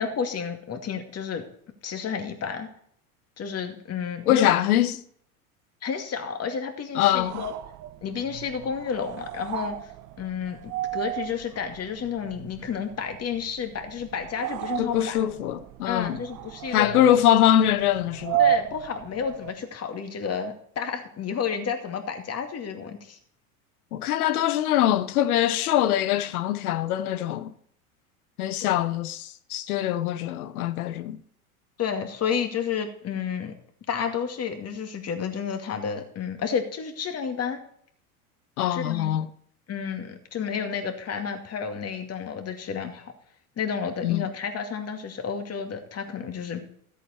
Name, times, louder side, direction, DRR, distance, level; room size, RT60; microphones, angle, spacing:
voice 1, 0.0-1.4 1.8-2.7 3.4-4.6 5.8-7.5 8.0-9.8 10.2-15.2 15.9-17.0 18.4-23.2 28.6-28.7 31.8-33.5 33.9-37.6 38.7-39.1 39.7-43.1 43.6-46.7, left 6 dB, 35° left, 2.4 m, -31 dB
voice 2, 4.3-5.0 6.9-7.4 14.8-16.2 16.7-18.4 23.9-27.5 28.4-31.2 38.6-39.3 44.0-44.3, left 12 dB, 75° left, 0.9 m, -23 dB
sound 1, 7.1-19.7, right 12 dB, 45° right, 0.9 m, -33 dB
13.5 x 8.3 x 4.4 m
hypercardioid pair, 85°, 44 cm